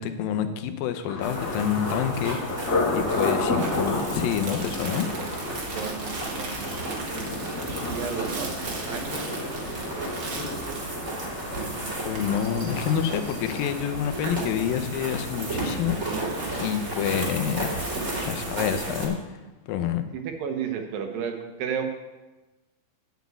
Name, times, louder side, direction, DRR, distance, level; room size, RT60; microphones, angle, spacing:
voice 1, 0.0-5.1 12.1-16.0 16.6-18.0 18.3-19.2 19.7-20.0, left 9 dB, 75° left, 8 dB, 2.5 m, -28 dB
Thunder, 1.1-16.8 17.1-17.7 18.1-18.4, left 3 dB, 30° left, 2.1 m, -33 dB
sound 1, 1.2-19.1, right 2 dB, 20° right, 2.4 m, -33 dB
Crumpling crinkling, 2.1-18.5, right 3 dB, 50° right, 1.9 m, -41 dB
voice 2, 3.3-3.8 5.7-8.6 8.8-10.8 14.3-14.4 20.1-21.8, right 7 dB, 75° right, 5 dB, 2.7 m, -35 dB
9.4 x 6.1 x 8.3 m, 1.1 s
omnidirectional pair, 4.2 m